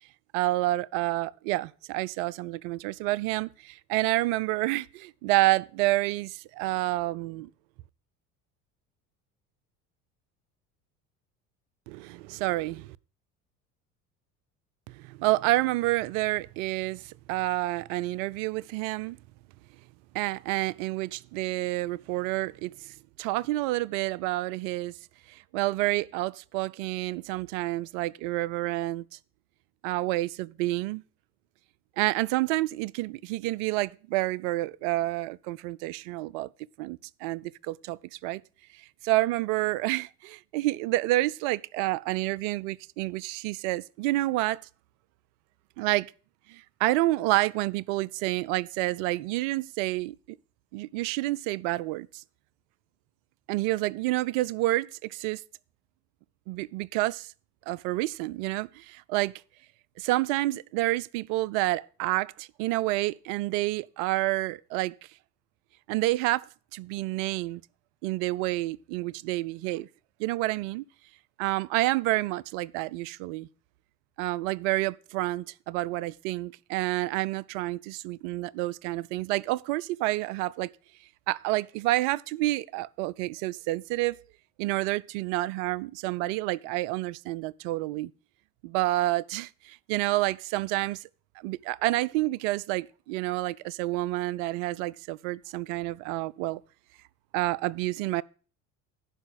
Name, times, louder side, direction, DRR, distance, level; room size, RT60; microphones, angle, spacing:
voice 1, 0.3-7.5 11.9-13.0 14.9-19.2 20.1-25.0 25.3-29.0 29.8-31.0 32.0-36.5 36.8-38.4 38.7-44.6 45.8-46.1 46.5-50.4 50.7-52.2 53.5-55.4 56.5-57.3 57.7-59.3 60.0-64.9 65.9-67.6 68.0-69.9 70.2-70.8 71.4-73.5 74.2-80.7 81.3-84.2 84.6-88.1 88.6-91.1 91.4-96.6 97.3-98.2, right 18 dB, 60° right, 0.5 m, -29 dB
11.0 x 4.9 x 7.5 m
hypercardioid pair, 65°, 44 cm